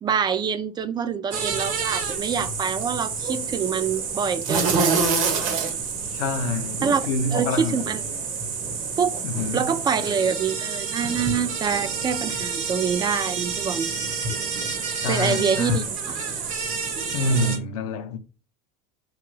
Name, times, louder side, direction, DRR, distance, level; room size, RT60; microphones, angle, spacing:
voice 1, 0.0-5.0 6.8-8.0 9.0-9.2 9.5-13.9 15.1-16.0, right 6 dB, 25° right, 0.3 m, -26 dB
sound 1, 1.3-17.6, right 5 dB, 45° right, 1.0 m, -28 dB
voice 2, 6.1-7.8 9.2-9.7 15.0-15.9 17.1-18.2, left 2 dB, 80° left, 0.5 m, -27 dB
2.9 x 2.3 x 3.1 m
supercardioid pair, 120°, 18 cm